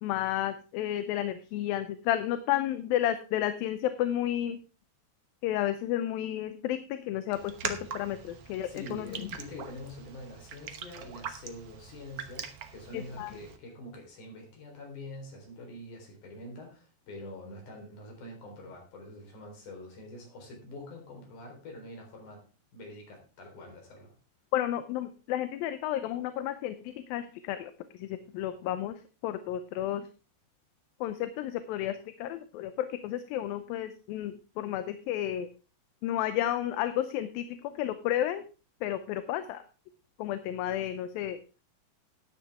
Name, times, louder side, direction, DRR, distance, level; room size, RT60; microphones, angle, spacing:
voice 1, 0.0-4.6 5.4-9.1 12.9-13.3 24.5-27.7 28.0-28.1 28.3-29.0 29.2-30.0 31.0-35.5 36.0-38.4 38.8-39.6 40.2-41.4, left 12 dB, 80° left, 10 dB, 2.5 m, -32 dB
Raindrop, 7.3-13.6, right 8 dB, 65° right, 1.5 m, -42 dB
voice 2, 8.6-22.4 22.7-24.1, left 1 dB, 55° left, 1 dB, 5.4 m, -45 dB
13.5 x 9.7 x 3.6 m, 0.34 s
omnidirectional pair, 4.2 m